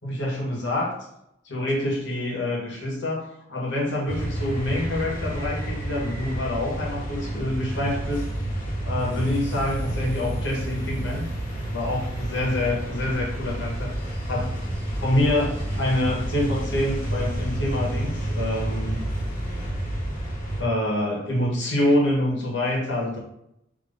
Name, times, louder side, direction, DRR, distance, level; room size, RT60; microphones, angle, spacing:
voice 1, 0.0-0.9 1.4-8.2 8.8-11.2 11.7-13.9 14.3-14.5 15.0-19.0 20.5-23.2, left 1 dB, 65° left, -3 dB, 1.4 m, -26 dB
sound 1, 4.1-20.6, right 1 dB, 40° left, 1.3 m, -30 dB
3.6 x 3.0 x 3.9 m, 0.79 s
head